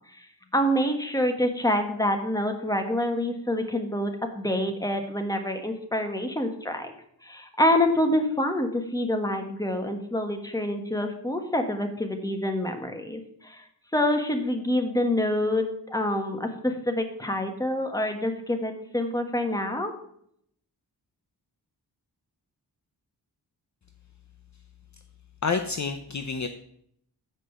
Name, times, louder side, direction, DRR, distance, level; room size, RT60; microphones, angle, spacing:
voice 1, 0.5-6.9 7.2-13.6 13.9-19.9, left 1 dB, 10° left, 5 dB, 1.3 m, -26 dB
voice 2, 25.4-26.5, left 5 dB, 45° left, 6 dB, 0.7 m, -28 dB
7.8 x 5.0 x 6.7 m, 0.68 s
wide cardioid pair, 90°, 41 cm